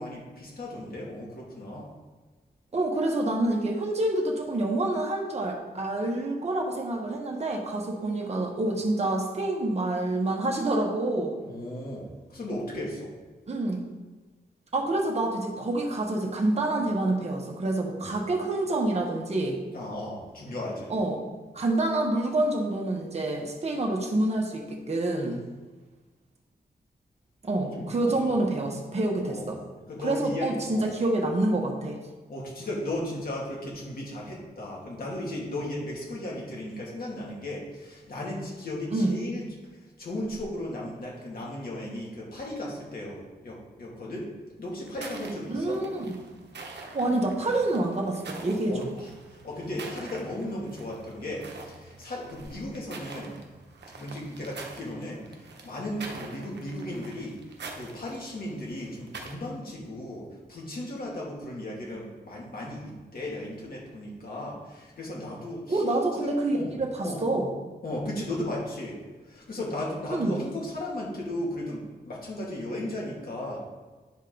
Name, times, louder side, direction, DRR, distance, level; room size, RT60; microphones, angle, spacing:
voice 1, 0.0-1.9 11.4-13.1 19.7-21.0 27.7-28.4 29.3-29.5 29.9-30.9 32.3-39.5 40.0-44.3 44.6-45.8 48.7-53.4 54.0-57.4 57.7-66.8 67.0-67.3 67.8-69.0 69.2-73.6, left 1 dB, 60° left, -4 dB, 2.4 m, -36 dB
voice 2, 2.7-11.4 13.5-13.8 14.7-19.6 20.9-21.2 21.5-25.4 27.4-29.6 30.0-32.0 38.9-39.2 45.5-46.1 46.9-48.9 65.7-67.5 70.1-70.4, right 2 dB, 40° right, 0 dB, 1.3 m, -27 dB
sound 1, 44.8-59.3, right 3 dB, 80° right, 1.0 m, -45 dB
10.5 x 5.2 x 3.9 m, 1.3 s
wide cardioid pair, 150°, 17 cm